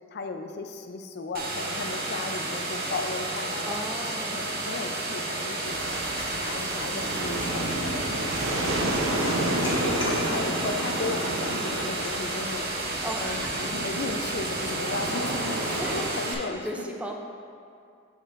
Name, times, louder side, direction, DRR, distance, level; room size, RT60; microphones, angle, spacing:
voice 1, 0.1-3.8 4.3-17.1, left 3 dB, 55° left, 5 dB, 0.5 m, -36 dB
sound 1, 1.3-16.3, right 2 dB, 50° right, 0.8 m, -32 dB
voice 2, 3.6-4.5 13.0-13.8 15.8-17.1, equal, 5° right, 2 dB, 0.4 m, -36 dB
sound 2, 5.4-15.5, left 1 dB, 25° left, 1.2 m, -46 dB
sound 3, 5.6-16.1, right 1 dB, 80° right, 0.8 m, -31 dB
7.9 x 6.2 x 2.5 m, 2.3 s
head